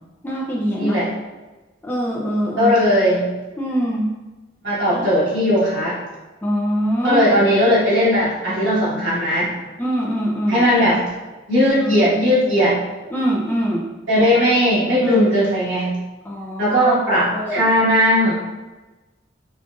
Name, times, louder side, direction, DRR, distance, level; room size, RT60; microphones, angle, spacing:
voice 1, 0.2-1.0 1.8-2.7 3.6-4.1 4.9-5.1 6.4-7.3 9.8-10.7 11.8-12.0 13.1-13.9 15.0-15.3 16.2-17.0 17.3-17.7, equal, 10° left, -4 dB, 0.4 m, -23 dB
voice 2, 2.6-3.3 4.6-6.0 7.0-9.5 10.5-11.0 11.5-12.8 14.1-16.0 16.6-18.3, equal, 80° right, -9 dB, 1.5 m, -17 dB
5.1 x 2.4 x 2.4 m, 1.2 s
head